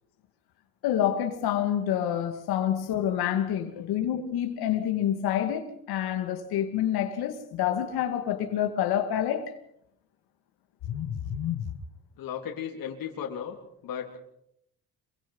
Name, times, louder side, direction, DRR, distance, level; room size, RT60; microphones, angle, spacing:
voice 1, 0.8-9.5 10.9-11.7, left 10 dB, 85° left, 2.6 m, -28 dB
voice 2, 12.2-13.6 13.8-14.2, left 8 dB, 65° left, 3.6 m, -36 dB
27.0 x 23.0 x 5.6 m
cardioid pair, 125°, 37 cm